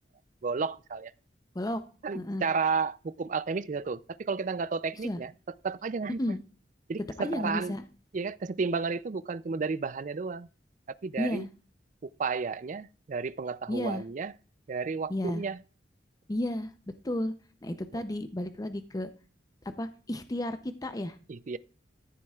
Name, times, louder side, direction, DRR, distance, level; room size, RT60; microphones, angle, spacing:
voice 1, 0.4-1.1 2.0-5.3 5.6-6.4 6.9-7.7 8.1-10.5 11.0-11.5 12.0-14.3 14.7-15.6 17.9-18.0 21.3-21.6, right 4 dB, 45° right, 0.4 m, -32 dB
voice 2, 2.1-2.5 5.0-5.2 6.2-6.4 7.2-7.8 11.2-11.5 13.7-14.0 15.1-15.4 16.3-16.7 17.0-17.3 17.6-19.1 19.8-21.2, left 1 dB, 20° left, 0.6 m, -32 dB
14.0 x 7.5 x 2.4 m
head